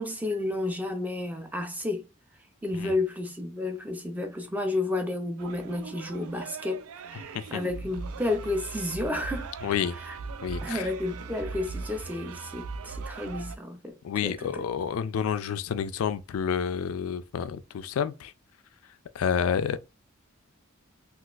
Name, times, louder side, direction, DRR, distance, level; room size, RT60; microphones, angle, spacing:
voice 1, 0.0-2.0 2.6-9.5 10.0-10.2 10.6-14.7, left 2 dB, 10° right, 0.4 m, -31 dB
sound 1, 5.4-13.6, right 4 dB, 85° right, 0.4 m, -39 dB
voice 2, 9.6-9.9 10.4-10.9 14.0-18.3 19.1-19.8, left 7 dB, 80° left, 0.3 m, -29 dB
3.9 x 2.4 x 2.4 m
head